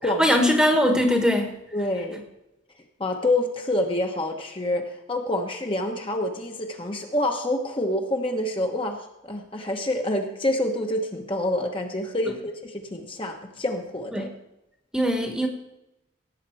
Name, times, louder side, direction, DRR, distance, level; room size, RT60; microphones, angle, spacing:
voice 1, 0.2-1.6 14.1-14.3 14.9-15.5, equal, 5° right, 3 dB, 1.3 m, -21 dB
voice 2, 1.7-2.2 3.0-14.3, left 1 dB, 30° left, 2 dB, 1.2 m, -27 dB
17.0 x 8.3 x 4.6 m, 0.91 s
head